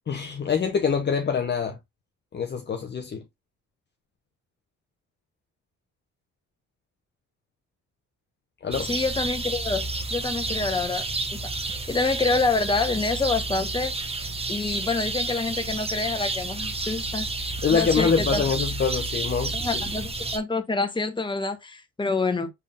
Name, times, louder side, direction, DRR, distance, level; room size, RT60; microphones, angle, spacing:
voice 1, 0.1-1.8 2.3-3.2 8.6-8.9 17.6-19.8, left 6 dB, 35° left, 0.8 m, -25 dB
sound 1, 8.7-20.4, right 2 dB, 20° right, 0.8 m, -30 dB
voice 2, 8.9-9.8 10.1-11.0 11.3-13.9 14.5-18.4 19.5-22.5, left 3 dB, 15° left, 1.0 m, -27 dB
5.6 x 3.7 x 2.4 m
cardioid pair, 90°, 30 cm